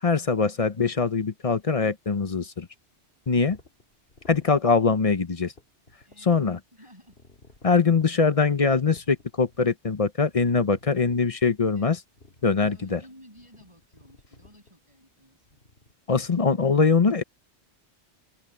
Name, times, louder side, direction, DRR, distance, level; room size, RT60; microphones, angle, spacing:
voice 1, 0.0-2.7 3.3-3.6 4.3-5.5 6.2-6.6 7.6-12.0 12.4-13.0 16.1-17.2, left 4 dB, 35° left, 0.8 m, -22 dB
sound 1, 3.5-4.8 5.0-5.1 5.4-6.5 7.1-8.1 8.4-8.5 8.9-9.7 10.0-11.3 11.9-12.9 13.4-14.8 15.4-15.9, left 2 dB, 60° left, 2.6 m, -54 dB
voice 2, 6.0-7.2 11.8-11.9 12.4-15.6, equal, 25° right, 8.0 m, -54 dB
open air
omnidirectional pair, 1.1 m